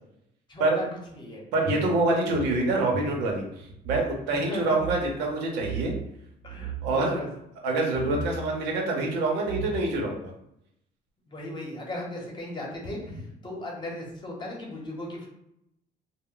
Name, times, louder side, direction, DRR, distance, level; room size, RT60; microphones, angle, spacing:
voice 1, 0.5-0.9 1.1-1.4 4.5-4.8 6.4-7.3 11.3-15.3, left 1 dB, 25° left, -2 dB, 0.9 m, -37 dB
voice 2, 1.5-5.9 6.8-7.2 7.6-10.3, right 2 dB, 90° right, 0 dB, 0.8 m, -26 dB
sound 1, 1.6-4.1 4.4-4.5 4.7-5.0 5.6-6.1 6.4-7.0 7.9-8.3 9.1-9.2 9.5-10.1, right 4 dB, 55° right, 0.6 m, -35 dB
2.2 x 2.1 x 3.7 m, 0.79 s
cardioid pair, 110°, 17 cm